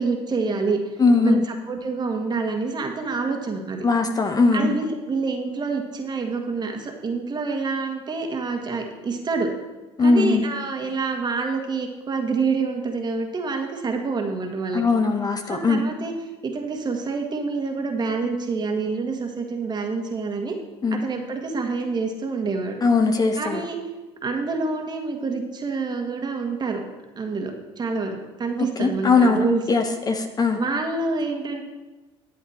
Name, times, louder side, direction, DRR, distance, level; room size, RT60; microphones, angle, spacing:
voice 1, 0.0-0.8 1.2-1.4 1.7-3.9 4.5-9.5 10.0-14.8 15.5-16.1 16.4-20.6 20.9-22.8 23.4-23.8 24.2-26.8 27.2-29.6 30.5-31.6, right 4 dB, 30° right, 3 dB, 1.8 m, -27 dB
voice 2, 1.0-1.4 3.8-4.8 10.0-10.4 14.7-15.8 20.8-21.0 22.8-23.6 28.8-30.6, left 3 dB, 30° left, 6 dB, 1.0 m, -20 dB
11.5 x 8.1 x 4.4 m, 1.2 s
hypercardioid pair, 80°, 13 cm